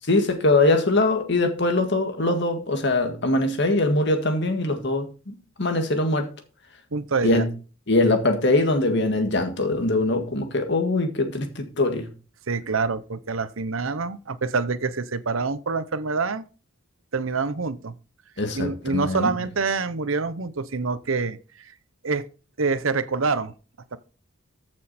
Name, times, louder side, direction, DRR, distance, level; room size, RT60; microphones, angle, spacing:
voice 1, 0.1-6.3 7.2-7.5 7.9-12.1 18.4-19.4, left 2 dB, 55° left, 1.8 m, -22 dB
voice 2, 6.9-7.4 12.5-16.4 17.1-18.0 18.5-21.4 22.0-22.3 22.6-23.5 23.9-24.0, right 4 dB, 75° right, 0.8 m, -26 dB
14.0 x 6.3 x 4.3 m
head